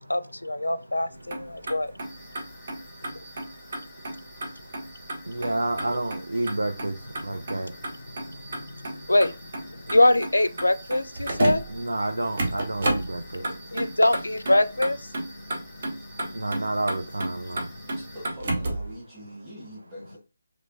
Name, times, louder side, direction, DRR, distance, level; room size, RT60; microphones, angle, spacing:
voice 1, 0.1-1.9 8.3-8.4 9.1-11.6 13.6-16.5 17.5-18.0, left 1 dB, 80° left, 0.3 m, -24 dB
Motor vehicle (road), 1.1-18.9, right 1 dB, 45° right, 0.9 m, -33 dB
voice 2, 1.2-1.9 2.2-8.5 9.7-10.0 11.7-13.9 15.4-18.0, right 2 dB, 75° right, 0.4 m, -33 dB
sound 1, 2.0-18.3, equal, 10° left, 0.6 m, -50 dB
voice 3, 17.9-20.2, equal, 10° right, 1.3 m, -43 dB
3.2 x 3.0 x 2.6 m
figure-of-eight pair, 150°, 0 cm